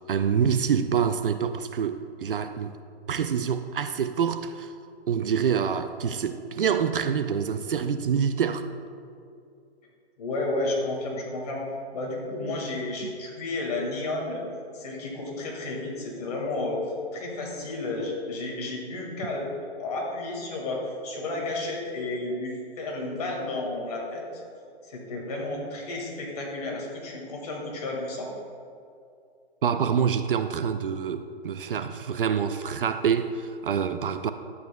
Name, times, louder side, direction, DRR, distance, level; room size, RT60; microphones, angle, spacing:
voice 1, 0.1-2.8 3.1-4.7 5.1-8.7 13.0-13.1 29.6-34.3, right 7 dB, 60° right, 10 dB, 0.4 m, -26 dB
voice 2, 10.2-11.6 11.9-14.4 14.7-16.8 17.1-19.5 19.8-24.2 24.8-28.3, left 2 dB, 35° left, -2 dB, 1.8 m, -32 dB
12.0 x 8.1 x 2.2 m, 2.4 s
hypercardioid pair, 170°, 32 cm